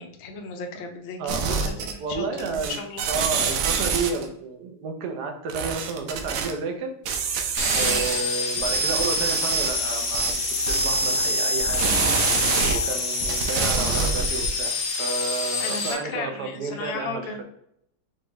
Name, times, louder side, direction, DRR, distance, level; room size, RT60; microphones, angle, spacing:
voice 1, 0.0-3.0 7.7-8.1 15.6-17.4, left 4 dB, 75° left, 4 dB, 1.4 m, -35 dB
voice 2, 1.2-2.7 3.1-6.9 7.7-12.1 12.7-14.7 15.0-17.4, right 4 dB, 60° right, 4 dB, 1.2 m, -31 dB
sound 1, 1.3-2.1 2.4-4.3 5.5-6.5 7.1-8.2 8.6-12.8 13.2-14.5, right 6 dB, 85° right, 1.5 m, -26 dB
sound 2, 7.6-15.9, left 4 dB, 60° left, 1.0 m, -27 dB
6.5 x 2.5 x 3.1 m, 0.71 s
omnidirectional pair, 2.2 m